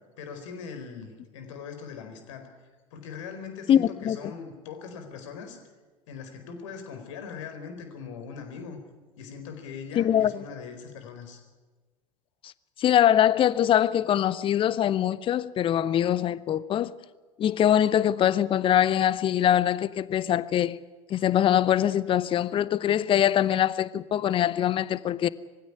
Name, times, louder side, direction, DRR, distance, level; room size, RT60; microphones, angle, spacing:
voice 1, 0.2-2.5 2.9-5.6 6.1-8.8 9.2-11.4, left 6 dB, 60° left, 4.6 m, -40 dB
voice 2, 3.7-4.2 10.0-10.3 12.4-12.5 12.8-16.9 17.4-20.8 21.1-25.3, left 10 dB, 30° left, 0.8 m, -23 dB
23.0 x 16.0 x 9.8 m
figure-of-eight pair, 80°, 18 cm